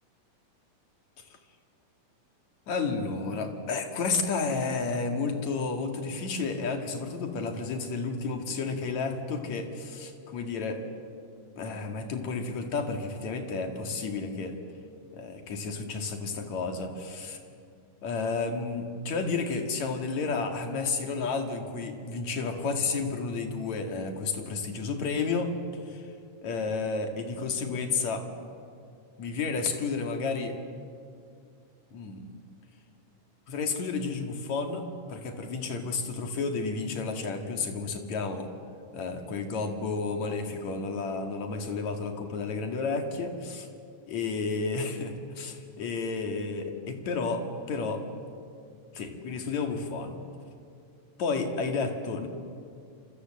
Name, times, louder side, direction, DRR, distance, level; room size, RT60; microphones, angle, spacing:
voice 1, 2.7-10.8 11.6-14.6 15.1-17.4 18.0-25.5 25.9-26.1 26.4-28.3 29.2-30.6 31.9-32.2 33.5-38.5 38.9-43.7 44.1-48.0 48.9-50.2 51.2-52.3, left 4 dB, 55° left, 5 dB, 3.2 m, -31 dB
28.0 x 25.5 x 7.7 m, 2.4 s
omnidirectional pair, 4.0 m